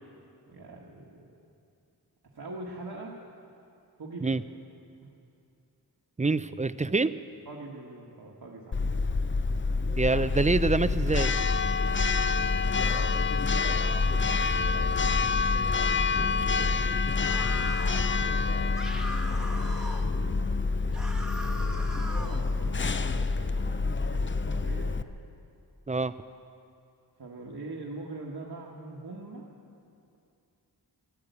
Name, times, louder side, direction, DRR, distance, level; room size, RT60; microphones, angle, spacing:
voice 1, 0.5-1.3 2.3-3.2 4.0-4.4 5.0-5.1 7.4-9.2 12.1-15.1 16.2-20.6 21.4-25.0 27.2-29.5, right 2 dB, 65° right, -3 dB, 1.6 m, -44 dB
voice 2, 6.2-7.1 10.0-11.3 25.9-26.1, right 3 dB, 20° right, 14 dB, 0.5 m, -26 dB
Church bell, 8.7-25.0, left 4 dB, 30° left, 0.5 m, -27 dB
sound 1, 17.2-18.0 18.7-20.1 20.9-22.4, equal, ahead, 1.4 m, -40 dB
13.5 x 12.5 x 8.2 m, 2.6 s
wide cardioid pair, 55°, 40 cm